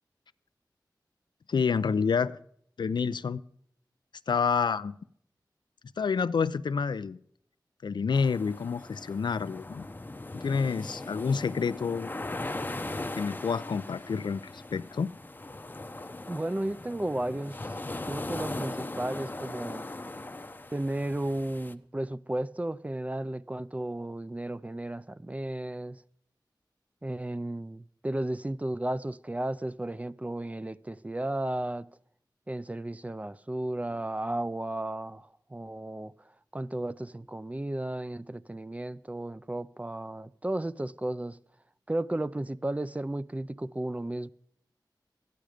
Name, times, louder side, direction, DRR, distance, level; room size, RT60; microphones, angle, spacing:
voice 1, 1.5-2.4 2.8-3.4 4.3-5.0 6.0-7.2 7.8-9.8 10.3-12.1 13.1-15.1, left 5 dB, 80° left, 0.4 m, -28 dB
sound 1, 8.1-21.7, left 2 dB, 25° left, 0.6 m, -39 dB
voice 2, 16.3-17.6 18.1-19.9 20.7-26.0 27.0-31.9 32.5-36.1 36.5-41.4 41.9-44.3, right 1 dB, 20° right, 0.4 m, -34 dB
13.5 x 10.5 x 5.0 m
wide cardioid pair, 80°, 8 cm